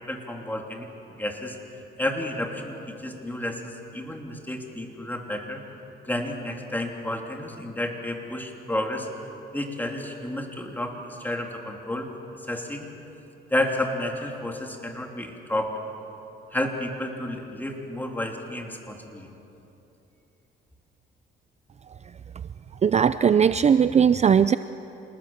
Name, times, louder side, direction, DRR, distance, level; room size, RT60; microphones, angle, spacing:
voice 1, 0.1-0.9 1.2-1.6 2.0-5.6 6.1-9.1 9.5-12.1 12.5-12.9 13.5-15.7 16.5-19.3, left 1 dB, 10° left, 2 dB, 3.2 m, -31 dB
voice 2, 22.8-24.6, right 7 dB, 35° right, 13 dB, 0.5 m, -18 dB
27.5 x 19.5 x 7.3 m, 3.0 s
cardioid pair, 90°, 20 cm